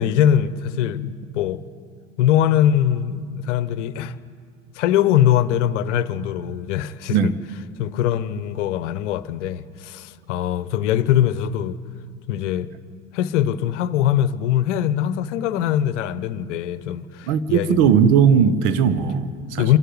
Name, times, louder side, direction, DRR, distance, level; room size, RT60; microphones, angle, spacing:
voice 1, 0.0-1.6 2.2-4.2 4.7-7.3 7.8-11.8 12.3-12.7 13.1-17.8 19.6-19.8, left 10 dB, 65° left, 0.9 m, -22 dB
voice 2, 17.3-19.7, right 7 dB, 55° right, 1.3 m, -18 dB
25.5 x 11.5 x 9.4 m
hypercardioid pair, 75°, 39 cm